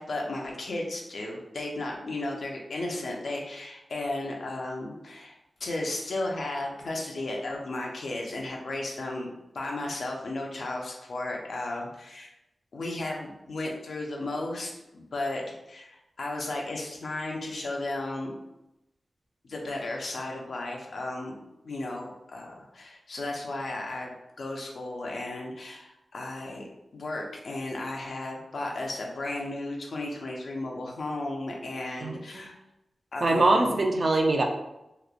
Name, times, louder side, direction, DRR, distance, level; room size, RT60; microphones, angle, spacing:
voice 1, 0.0-9.3 9.5-12.3 12.7-18.3 19.4-21.4 21.6-24.1 24.4-26.7 26.9-32.5 33.1-33.8, left 2 dB, 75° left, 0 dB, 0.5 m, -34 dB
voice 2, 32.0-32.5 33.2-34.4, right 2 dB, 55° right, 2 dB, 0.4 m, -23 dB
2.9 x 2.1 x 2.4 m, 0.89 s
wide cardioid pair, 85°, 0 cm